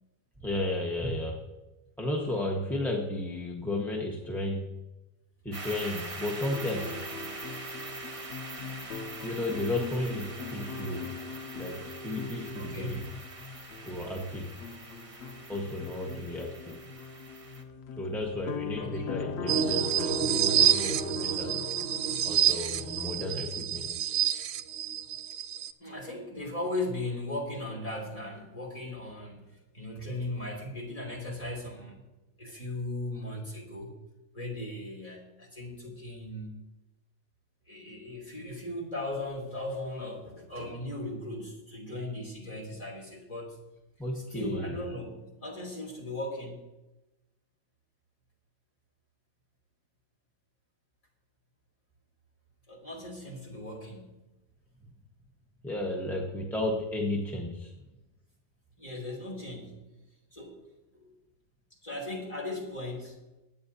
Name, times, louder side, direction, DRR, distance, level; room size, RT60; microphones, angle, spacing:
voice 1, 0.4-1.4 2.0-4.7 5.4-7.0 9.2-11.0 11.5-13.1 13.9-14.5 15.5-16.7 18.0-21.5 22.2-24.1 44.0-44.8 55.6-57.7, left 1 dB, ahead, -2 dB, 1.1 m, -33 dB
sound 1, 5.5-17.6, right 2 dB, 25° right, 1.0 m, -44 dB
sound 2, 6.4-23.1, left 3 dB, 75° left, 0.6 m, -40 dB
voice 2, 12.5-13.1 18.8-19.1 25.8-29.4 29.7-32.0 32.4-33.9 34.3-36.6 37.7-43.6 44.1-46.6 52.7-54.2 58.8-59.8 60.3-60.6 60.9-61.1 61.8-63.2, left 1 dB, 20° left, -2 dB, 3.1 m, -37 dB
sound 3, 19.5-25.7, right 10 dB, 75° right, 0.7 m, -28 dB
21.5 x 8.8 x 2.8 m, 1.0 s
omnidirectional pair, 1.8 m